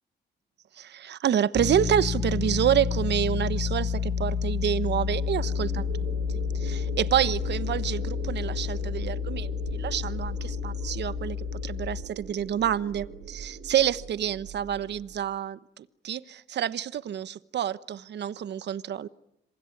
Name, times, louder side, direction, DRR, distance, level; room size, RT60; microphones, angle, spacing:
voice 1, 0.8-5.8 6.6-11.4 11.6-19.1, right 10 dB, 60° right, 15 dB, 1.1 m, -28 dB
sound 1, 1.5-12.0, left 7 dB, 35° left, 4.5 m, -30 dB
sound 2, 4.8-15.2, right 6 dB, 75° right, 5.1 m, -41 dB
27.0 x 24.5 x 8.6 m, 0.80 s
cardioid pair, 90°, 20 cm